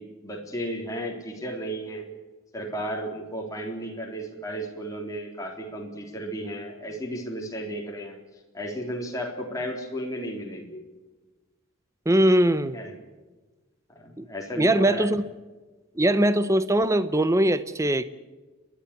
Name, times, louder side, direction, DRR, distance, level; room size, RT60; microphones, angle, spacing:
voice 1, 0.0-2.1 2.5-8.2 8.5-10.8 12.7-12.9 14.0-15.1, equal, 15° left, 0 dB, 3.6 m, -34 dB
voice 2, 12.1-12.8 14.2-14.3 14.6-15.2 16.0-18.0, right 1 dB, 15° right, 13 dB, 0.7 m, -21 dB
29.5 x 11.5 x 8.3 m, 1.2 s
head